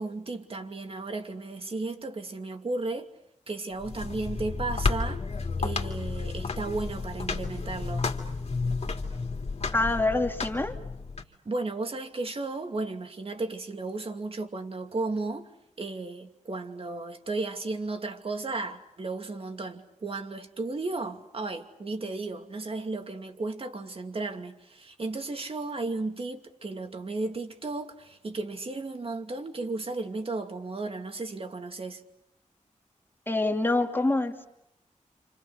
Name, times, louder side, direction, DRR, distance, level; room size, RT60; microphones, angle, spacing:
voice 1, 0.0-3.1 3.5-5.2 5.6-8.1 11.4-15.5 15.8-32.0, right 3 dB, 50° right, 2.6 m, -34 dB
sound 1, 3.8-11.2, left 4 dB, 55° left, 2.7 m, -32 dB
voice 2, 9.7-10.7 33.3-34.3, left 2 dB, 15° left, 2.6 m, -25 dB
30.0 x 28.0 x 6.5 m
wide cardioid pair, 115°, 13 cm